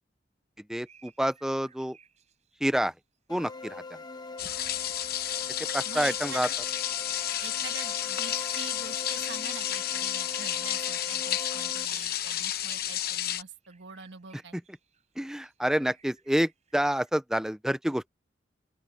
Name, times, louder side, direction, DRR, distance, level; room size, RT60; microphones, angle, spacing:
voice 1, 0.7-2.0 2.6-2.9 3.3-3.8 5.7-6.5 15.2-18.1, equal, 5° right, 0.5 m, -28 dB
sound 1, 0.7-3.2 3.9-17.1, right 7 dB, 40° right, 5.1 m, -63 dB
sound 2, 3.3-11.9, left 3 dB, 25° left, 1.2 m, -42 dB
sound 3, 4.4-13.4, left 11 dB, 60° left, 1.0 m, -31 dB
voice 2, 5.8-6.4 7.4-14.6, right 5 dB, 75° right, 1.5 m, -45 dB
open air
head